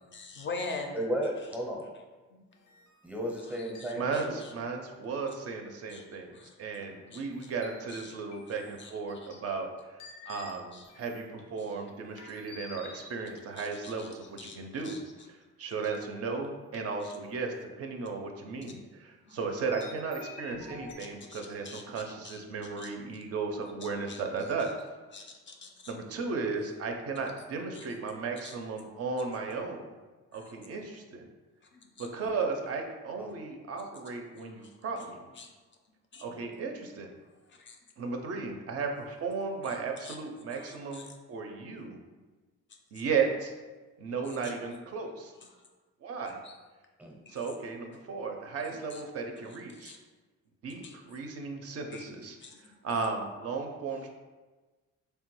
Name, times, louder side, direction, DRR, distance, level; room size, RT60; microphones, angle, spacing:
voice 1, 0.1-1.0 2.3-2.4 3.5-4.5 5.9-6.6 7.1-7.5 7.9-8.2 8.8-8.9 9.2-9.4 10.7-10.9 11.3-11.4 12.8-13.1 13.6-14.1 14.4-15.0 19.2-19.4 21.3-22.4 22.8-22.9 23.8-24.2 24.6-24.7 25.1-25.9 27.7-27.9 28.4-28.5 30.3-30.5 31.8-32.1 34.4-34.7 35.4-35.5 36.1-36.3 37.5-37.8 40.0-40.2 40.5-41.1 43.0-43.1 44.4-44.5 45.4-45.6 46.4-46.5 47.3-47.4 48.9-49.0 49.4-49.5 49.7-50.0 50.8-51.0 51.9-52.1 52.4-52.8, left 3 dB, 40° left, 3 dB, 0.4 m, -45 dB
voice 2, 0.9-1.8 3.0-4.3 33.2-33.3 47.0-47.2, right 1 dB, 5° right, -1 dB, 0.6 m, -34 dB
sound 1, 2.5-4.2 5.9-6.4 6.8-7.3 7.6-8.5 9.3-9.4 10.0-11.4 12.2-13.6 14.5-14.8 15.9-16.0 16.4-16.5 16.7-16.9 17.5-17.6 19.7-21.0, left 4 dB, 90° left, 0.6 m, -50 dB
voice 3, 3.9-6.3 6.6-15.0 15.6-24.7 25.9-29.8 30.3-31.2 32.0-35.2 36.2-37.1 38.0-42.0 42.9-43.5 44.0-45.3 46.0-46.4 47.3-49.9 50.6-52.4 52.8-54.1, right 4 dB, 55° right, 3 dB, 0.4 m, -35 dB
3.2 x 2.2 x 3.0 m, 1.3 s
cardioid pair, 90°, 30 cm